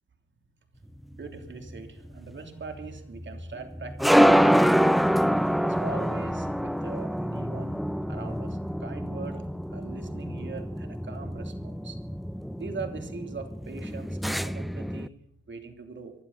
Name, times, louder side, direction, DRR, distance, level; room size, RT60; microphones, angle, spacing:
sound 1, 1.0-15.1, equal, ahead, 0.5 m, -26 dB
voice 1, 1.1-5.1 5.6-7.8 8.1-9.4 9.7-12.0 12.6-15.1 15.5-16.1, right 4 dB, 40° right, 5 dB, 3.2 m, -41 dB
25.5 x 12.0 x 4.1 m, 0.80 s
cardioid pair, 90°, 30 cm